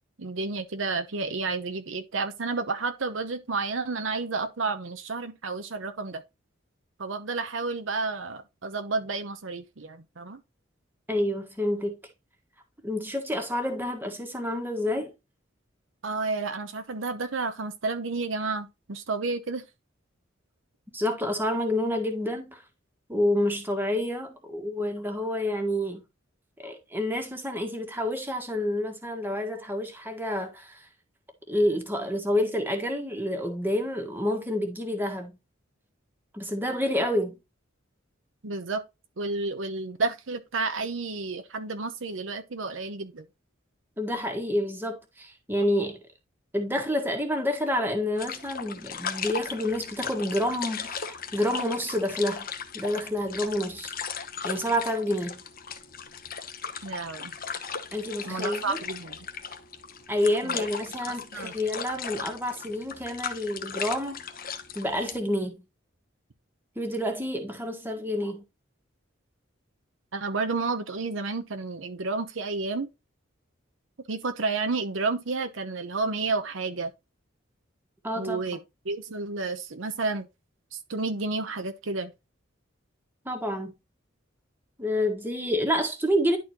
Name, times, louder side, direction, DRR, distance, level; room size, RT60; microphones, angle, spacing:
voice 1, 0.2-6.2 7.0-10.4 16.0-19.6 38.4-38.8 39.2-43.2 56.8-57.3 58.2-59.2 60.4-60.6 61.1-61.5 70.1-72.9 74.1-76.9 78.2-78.6 78.8-80.3 80.7-82.1, right 3 dB, 75° right, 0.9 m, -31 dB
voice 2, 11.1-12.0 12.8-15.1 20.9-22.6 23.1-26.0 26.6-30.8 31.5-35.3 36.3-37.4 44.0-46.0 46.5-52.5 52.7-53.9 54.4-55.4 57.9-58.8 60.1-64.2 64.7-65.6 66.7-68.4 78.0-78.4 83.2-83.7 84.8-86.4, left 1 dB, 10° right, 1.7 m, -28 dB
sound 1, 48.2-65.2, left 6 dB, 50° left, 1.0 m, -37 dB
11.0 x 4.3 x 2.9 m
head